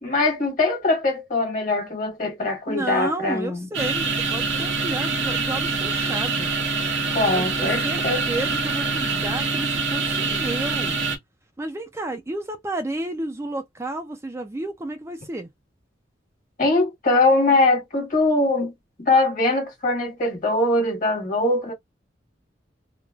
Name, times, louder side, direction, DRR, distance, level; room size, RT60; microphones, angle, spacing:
voice 1, 0.0-3.7 7.1-8.2 16.6-18.7 19.0-21.7, left 2 dB, 45° left, 1.3 m, -22 dB
voice 2, 2.7-6.5 7.3-8.0 8.3-10.9 11.6-15.5, right 2 dB, 15° right, 0.3 m, -31 dB
sound 1, 3.7-11.2, right 4 dB, 85° right, 0.9 m, -25 dB
3.1 x 2.1 x 2.3 m
head